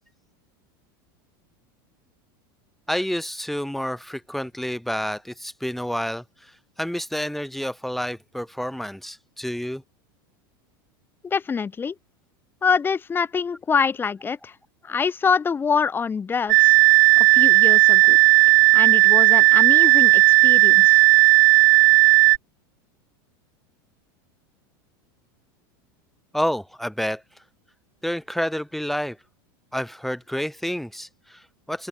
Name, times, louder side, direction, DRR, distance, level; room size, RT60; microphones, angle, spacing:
voice 1, 2.9-6.5 6.8-9.8 26.3-27.2 28.0-29.2 29.7-31.9, equal, ahead, 1.3 m, -29 dB
voice 2, 11.2-12.0 12.6-14.6 14.8-16.8 17.2-18.2 18.7-21.0, left 6 dB, 15° left, 2.0 m, -25 dB
sound 1, 16.5-22.4, right 25 dB, 65° right, 0.9 m, -14 dB
open air
supercardioid pair, 140°, 12 cm